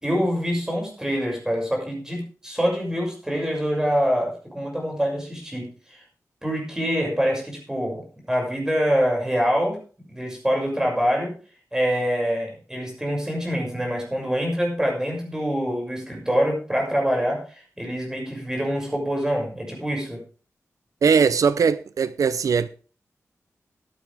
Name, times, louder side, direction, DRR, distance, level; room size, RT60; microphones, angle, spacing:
voice 1, 0.0-6.0 6.4-9.8 10.1-11.3 11.7-20.2, equal, 10° right, 6.2 m, -25 dB
voice 2, 21.0-22.7, right 6 dB, 85° right, 0.6 m, -20 dB
15.0 x 11.0 x 3.5 m
wide cardioid pair, 140°, 6 cm